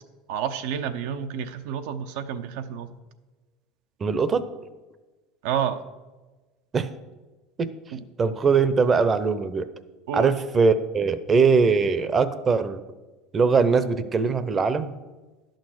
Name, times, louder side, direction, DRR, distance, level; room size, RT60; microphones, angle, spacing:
voice 1, 0.3-2.9 5.4-5.8 7.9-8.0 10.1-10.3, right 8 dB, 75° right, 8 dB, 0.8 m, -29 dB
voice 2, 4.0-4.4 6.7-6.9 7.6-7.7 8.2-9.7 10.1-12.8 13.3-14.9, right 5 dB, 25° right, 13 dB, 0.7 m, -21 dB
11.0 x 6.4 x 6.4 m, 1.2 s
supercardioid pair, 120°, 0 cm